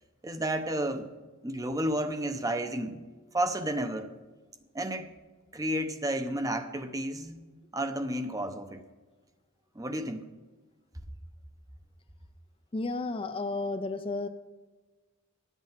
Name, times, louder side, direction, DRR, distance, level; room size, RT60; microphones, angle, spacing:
voice 1, 0.2-1.1 1.4-3.0 3.3-4.1 4.7-5.1 5.5-8.8 9.7-10.3, right 1 dB, 15° right, 8 dB, 0.7 m, -32 dB
voice 2, 12.7-14.3, left 3 dB, 25° left, 8 dB, 0.4 m, -32 dB
10.5 x 8.1 x 7.3 m, 1.3 s
head